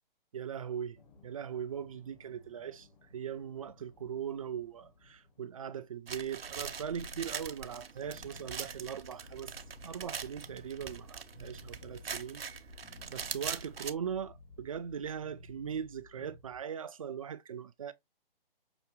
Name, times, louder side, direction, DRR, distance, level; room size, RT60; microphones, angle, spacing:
voice 1, 0.3-9.5 9.8-12.4 13.1-17.9, right 8 dB, 35° right, 0.4 m, -40 dB
sound 1, 0.9-6.0 8.2-16.6, left 2 dB, 50° left, 1.5 m, -60 dB
sound 2, 6.1-13.9, right 6 dB, 80° right, 0.8 m, -42 dB
sound 3, 6.8-7.4 7.9-11.1 11.3-12.2 12.7-15.9 16.1-16.4, left 2 dB, 75° left, 1.8 m, -54 dB
5.9 x 2.5 x 3.1 m
figure-of-eight pair, 140°, 29 cm